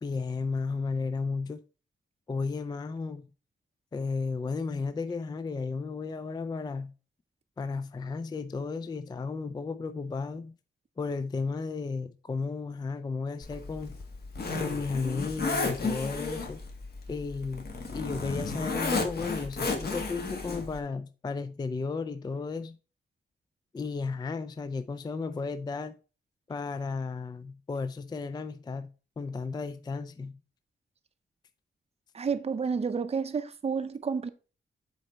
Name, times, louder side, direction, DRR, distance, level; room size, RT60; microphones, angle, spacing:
voice 1, 0.0-1.6 2.3-3.3 3.9-6.9 7.6-10.5 11.0-13.9 14.6-16.6 17.1-22.8 23.7-26.0 26.5-28.9 29.2-30.3, left 4 dB, 20° left, 0.3 m, -34 dB
Zipper (clothing), 13.4-20.8, left 3 dB, 50° left, 1.6 m, -33 dB
voice 2, 32.1-34.3, right 5 dB, 30° right, 0.6 m, -30 dB
7.9 x 4.4 x 4.4 m
wide cardioid pair, 155°, 20 cm